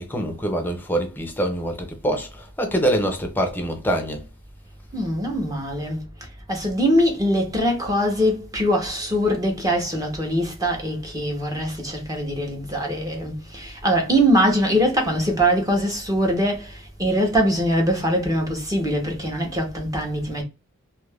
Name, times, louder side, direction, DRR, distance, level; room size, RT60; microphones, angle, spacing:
voice 1, 0.0-4.2, right 1 dB, 10° left, 0.6 m, -25 dB
voice 2, 4.9-6.0 6.5-20.4, equal, 15° right, 0.9 m, -22 dB
2.7 x 2.4 x 3.3 m
head